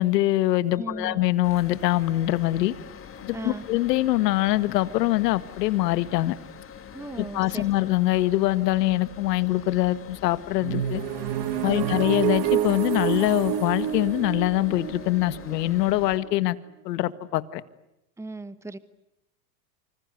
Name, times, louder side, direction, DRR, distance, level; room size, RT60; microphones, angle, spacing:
voice 1, 0.0-2.7 3.2-6.3 7.2-11.0 11.6-16.6 16.8-17.6, left 16 dB, 75° left, 14 dB, 1.8 m, -24 dB
voice 2, 0.8-1.2 3.3-3.6 6.9-7.7 11.6-12.0 18.2-18.8, right 2 dB, 5° right, 14 dB, 1.3 m, -36 dB
sound 1, 1.4-16.2, left 7 dB, 25° left, 3.2 m, -44 dB
sound 2, 10.6-16.4, right 11 dB, 55° right, 2.2 m, -28 dB
27.5 x 26.5 x 8.2 m, 0.88 s
supercardioid pair, 115°, 49 cm